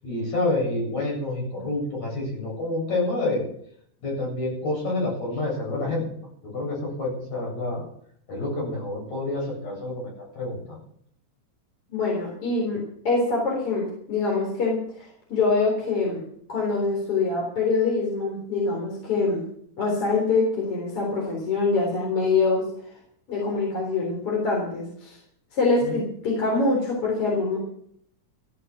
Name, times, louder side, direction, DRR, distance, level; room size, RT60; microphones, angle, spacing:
voice 1, 0.0-3.4 4.0-6.1 6.5-7.8 8.3-10.8 25.8-26.0, left 2 dB, 65° left, -3 dB, 9.3 m, -28 dB
voice 2, 11.9-16.2 16.5-19.4 19.8-22.6 23.3-25.2 25.5-27.6, left 3 dB, 45° left, -2 dB, 4.7 m, -24 dB
14.5 x 11.5 x 6.3 m, 0.66 s
omnidirectional pair, 3.5 m